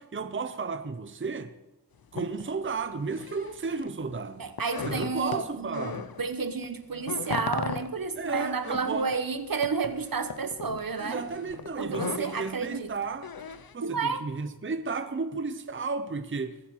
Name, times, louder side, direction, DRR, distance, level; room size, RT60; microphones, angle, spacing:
voice 1, 0.0-1.5 2.1-4.5 4.8-6.1 8.2-9.1 11.0-13.3 13.7-16.6, right 4 dB, 30° right, 0.8 m, -33 dB
sound 1, 2.1-3.9 4.2-6.3 6.6-13.7, left 6 dB, 60° left, 0.8 m, -38 dB
voice 2, 4.4-11.2 11.8-12.9 13.8-14.2, right 5 dB, 60° right, 1.1 m, -31 dB
21.0 x 7.9 x 4.7 m
wide cardioid pair, 65°, 40 cm